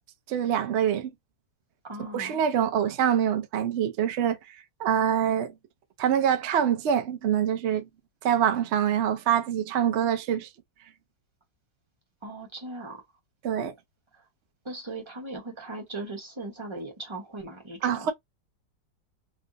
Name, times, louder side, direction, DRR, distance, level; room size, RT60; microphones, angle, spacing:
voice 1, 0.3-1.1 2.0-4.4 4.8-5.5 6.0-7.9 8.2-10.5 13.4-13.7 17.8-18.1, right 9 dB, 75° right, 0.6 m, -25 dB
voice 2, 1.8-2.4 12.2-13.0 14.6-18.1, right 2 dB, 20° right, 0.9 m, -38 dB
3.4 x 2.5 x 2.6 m
omnidirectional pair, 1.9 m